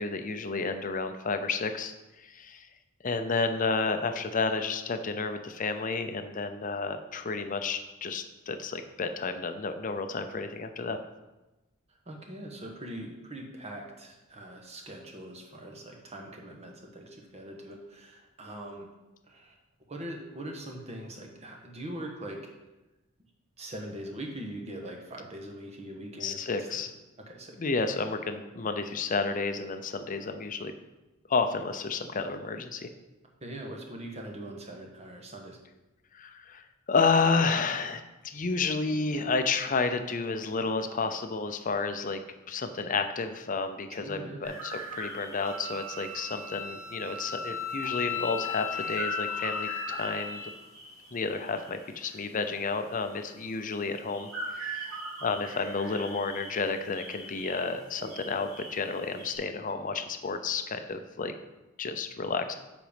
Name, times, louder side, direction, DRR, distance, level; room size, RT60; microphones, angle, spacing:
voice 1, 0.0-1.9 2.2-2.7 3.0-11.0 26.2-26.9 27.6-30.7 31.3-32.9 36.1-42.2 42.5-50.4 51.1-61.3 61.8-62.6, left 4 dB, 40° left, 8 dB, 0.6 m, -31 dB
voice 2, 12.1-18.9 19.3-19.6 19.9-22.4 23.6-26.5 26.7-26.8 27.3-27.6 33.4-35.6 43.9-44.4, right 1 dB, 30° right, 2 dB, 1.3 m, -42 dB
sound 1, 44.4-59.4, right 2 dB, 65° right, 2.9 m, -42 dB
Wind instrument woodwind instrument, 45.4-50.5, left 6 dB, 10° left, 1.2 m, -36 dB
7.6 x 5.2 x 5.1 m, 1.1 s
head